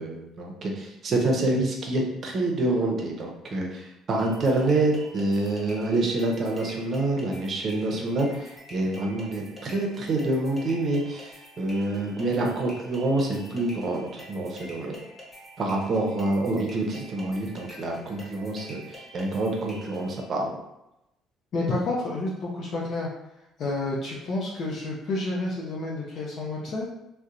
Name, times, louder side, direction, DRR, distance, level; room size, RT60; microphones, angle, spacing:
voice 1, 0.0-15.0 15.6-20.6, right 2 dB, 50° right, 1 dB, 0.6 m, -27 dB
sound 1, 4.2-20.2, equal, 25° left, 0.9 m, -47 dB
voice 2, 21.5-23.1 23.6-26.9, left 2 dB, 55° left, -5 dB, 0.5 m, -29 dB
2.7 x 2.1 x 2.4 m, 0.90 s
hypercardioid pair, 65°, 0 cm